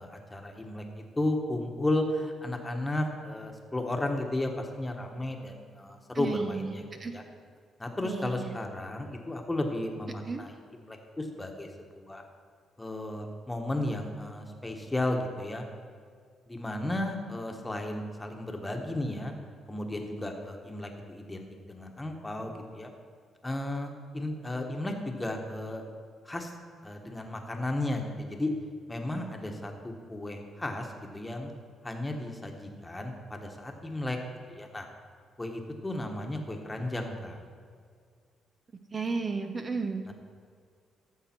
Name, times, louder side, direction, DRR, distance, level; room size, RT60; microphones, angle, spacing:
voice 1, 0.0-7.2 7.8-11.7 11.9-12.2 12.8-15.6 16.5-19.3 19.7-22.9 23.4-25.8 26.2-26.5 26.8-28.5 28.9-30.9 31.1-31.5 31.8-34.2 34.5-34.9 35.4-37.4 40.0-40.1, left 1 dB, 15° left, 3 dB, 1.3 m, -34 dB
voice 2, 6.1-6.7 7.0-7.1 8.0-8.6 10.3-10.4 38.9-40.0, right 4 dB, 35° right, 6 dB, 0.6 m, -33 dB
13.5 x 6.7 x 4.5 m, 2.1 s
cardioid pair, 90°, 0 cm